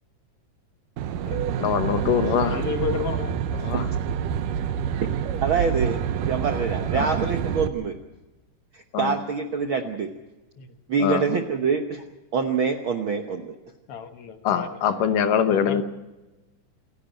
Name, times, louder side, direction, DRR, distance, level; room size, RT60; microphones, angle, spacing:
Aircraft, 1.0-7.7, right 8 dB, 85° right, 2.6 m, -27 dB
voice 1, 1.6-2.6 3.6-3.9 6.9-7.1 8.9-9.1 11.0-11.2 14.4-15.8, left 8 dB, 85° left, 2.9 m, -23 dB
voice 2, 2.4-3.4 10.6-10.7 13.9-14.8 15.5-15.8, left 6 dB, 55° left, 1.8 m, -32 dB
voice 3, 5.4-8.0 9.0-10.1 10.9-12.0 12.3-13.5, right 5 dB, 65° right, 1.2 m, -25 dB
28.0 x 11.0 x 9.1 m
omnidirectional pair, 3.7 m